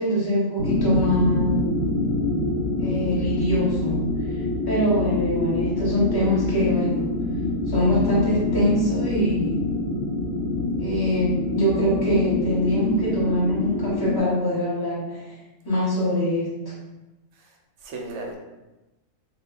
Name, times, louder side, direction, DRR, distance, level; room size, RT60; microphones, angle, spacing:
voice 1, 0.0-1.7 2.8-4.1 4.3-7.1 7.7-9.7 10.8-15.4 15.6-16.7, equal, 20° left, -8 dB, 0.9 m, -23 dB
sound 1, 0.6-14.2, left 2 dB, 65° left, 1.1 m, -26 dB
voice 2, 17.3-18.4, right 2 dB, 65° right, 0 dB, 0.8 m, -37 dB
2.4 x 2.2 x 3.8 m, 1.0 s
omnidirectional pair, 1.4 m